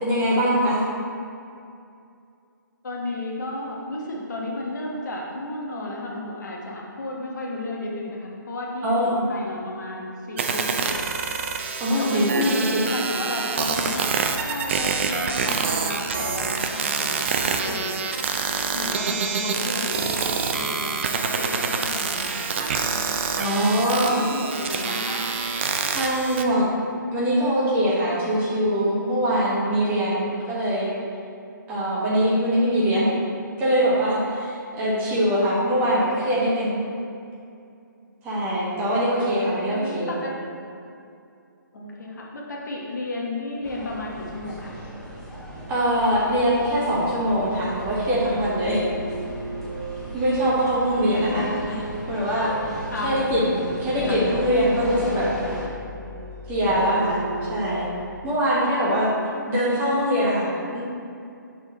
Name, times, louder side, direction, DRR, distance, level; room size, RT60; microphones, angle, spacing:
voice 1, 0.0-0.8 8.8-9.2 11.8-12.8 23.3-24.2 25.9-26.7 27.1-30.9 31.7-33.1 33.6-36.8 38.2-40.1 45.7-48.8 50.1-51.5 52.1-52.5 53.0-55.3 56.5-57.8 58.2-59.1 59.5-60.8, equal, 15° right, -7 dB, 1.1 m, -22 dB
voice 2, 2.8-11.1 11.9-14.1 14.4-18.0 18.7-22.6 23.4-25.2 34.8-35.3 38.7-39.1 39.7-40.3 41.7-44.7 50.9-51.8 52.9-53.1 54.1-54.2, left 2 dB, 60° left, -2 dB, 1.2 m, -33 dB
sound 1, 10.4-26.4, right 5 dB, 35° right, 0.4 m, -26 dB
sound 2, 43.6-55.7, equal, 5° left, 0.7 m, -38 dB
sound 3, 47.5-58.0, equal, 40° left, 0.8 m, -35 dB
6.2 x 4.0 x 3.9 m, 2.5 s
figure-of-eight pair, 145°, 11 cm